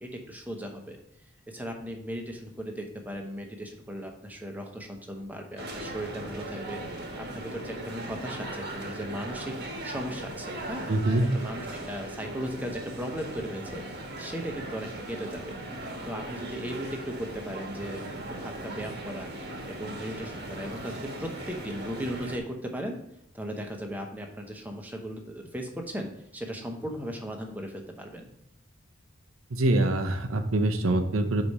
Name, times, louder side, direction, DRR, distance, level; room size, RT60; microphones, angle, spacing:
voice 1, 0.0-1.0 1.5-9.5 9.8-10.9 11.3-15.6 16.0-18.0 18.3-19.3 19.6-23.0 23.3-28.3, equal, 10° right, 3 dB, 0.8 m, -37 dB
sound 1, 5.6-22.4, right 1 dB, 55° right, 1.2 m, -38 dB
voice 2, 10.9-11.3 29.5-31.4, right 2 dB, 75° right, 6 dB, 0.7 m, -24 dB
4.9 x 4.2 x 5.3 m, 0.76 s
head